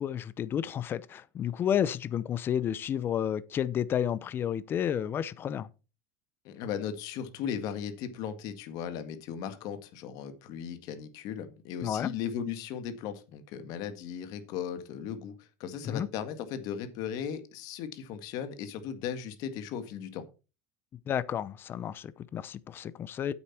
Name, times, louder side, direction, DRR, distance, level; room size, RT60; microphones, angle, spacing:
voice 1, 0.0-5.7 11.8-12.1 15.8-16.1 21.1-23.3, left 9 dB, 25° left, 0.6 m, -31 dB
voice 2, 6.4-20.2, left 8 dB, 45° left, 1.8 m, -37 dB
9.4 x 8.1 x 4.3 m
supercardioid pair, 165°, 9 cm